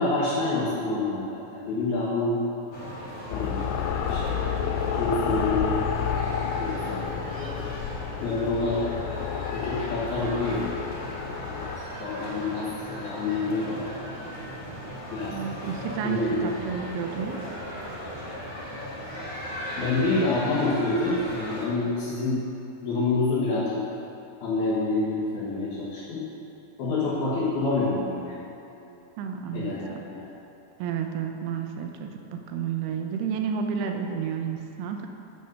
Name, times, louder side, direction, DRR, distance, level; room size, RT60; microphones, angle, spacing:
voice 1, 0.0-2.4 3.3-4.4 4.9-5.8 6.6-7.5 8.2-10.7 12.0-14.0 15.1-15.3 16.0-16.5 19.8-22.4 22.8-23.8 24.4-26.2 26.8-28.4 28.7-28.9 29.5-30.3, left 2 dB, 70° left, -10 dB, 3.2 m, -27 dB
sound 1, 2.7-21.6, equal, 45° left, 1.6 m, -37 dB
sound 2, 3.3-11.8, left 7 dB, 85° left, 2.5 m, -30 dB
voice 2, 15.3-17.5 29.2-30.0 30.8-35.1, right 7 dB, 80° right, 4 dB, 2.6 m, -31 dB
9.3 x 7.3 x 5.5 m, 2.9 s
omnidirectional pair, 4.8 m